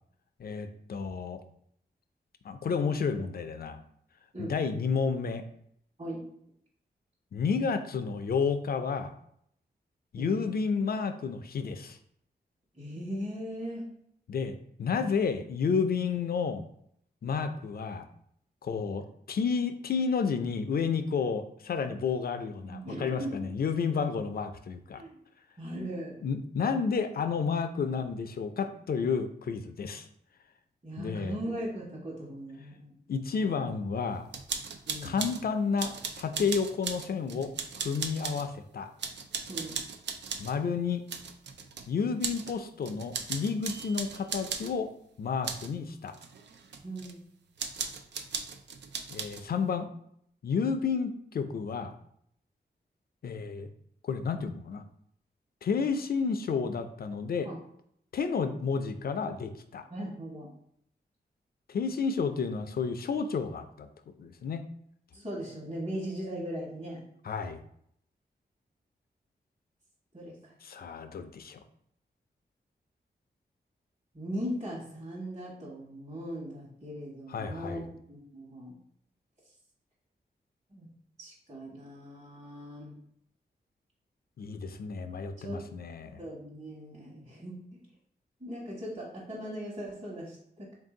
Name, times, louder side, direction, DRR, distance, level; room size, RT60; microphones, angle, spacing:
voice 1, 0.4-1.4 2.4-3.8 4.4-5.4 7.3-9.1 10.1-12.0 14.3-16.6 17.2-18.0 18.6-25.0 26.2-30.1 31.0-31.4 33.1-34.3 35.0-38.9 40.4-41.1 41.9-44.9 45.2-46.1 49.1-49.9 50.4-51.9 53.2-53.7 54.0-54.8 55.6-57.5 58.1-59.8 61.7-63.9 64.2-64.6 67.2-67.6 70.6-71.6 77.3-77.9 84.4-86.2, left 5 dB, 60° left, 8 dB, 0.4 m, -31 dB
voice 2, 10.2-10.5 12.8-13.8 22.7-23.4 25.0-25.1 25.6-26.2 30.8-32.9 34.9-35.3 39.5-39.8 46.8-47.2 57.4-57.6 59.9-60.5 65.1-67.0 70.1-70.3 74.1-77.8 78.1-78.8 80.7-80.9 81.2-83.0 85.4-85.6 86.2-87.6 88.4-90.7, equal, 40° right, -6 dB, 1.2 m, -39 dB
sound 1, 34.3-35.4 35.8-38.5 39.0-40.6 41.1-41.9 42.2-42.6 42.8-44.7 45.4-45.7 46.1-47.1 47.6-49.5, right 5 dB, 90° right, 0.4 m, -37 dB
3.7 x 2.7 x 3.7 m, 0.69 s
wide cardioid pair, 75°, 17 cm